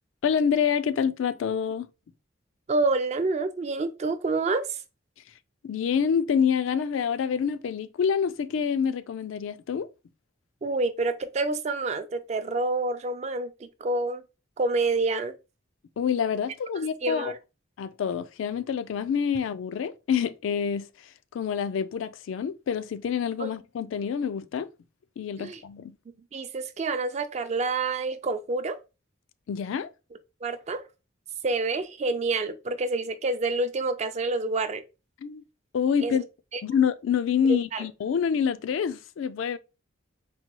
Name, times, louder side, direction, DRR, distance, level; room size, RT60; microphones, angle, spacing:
voice 1, 0.2-1.9 5.6-9.9 16.0-17.3 17.8-24.7 25.2-26.0 29.5-29.9 35.2-35.4 35.7-36.2 36.6-39.6, left 7 dB, 75° left, 0.3 m, -27 dB
voice 2, 2.7-4.8 10.6-14.2 14.6-15.3 17.0-17.4 23.4-23.5 25.4-25.6 26.3-28.8 30.4-30.8 31.4-34.8 36.0-36.2 37.7-37.9, right 3 dB, 35° right, 0.3 m, -28 dB
4.1 x 2.2 x 2.9 m
head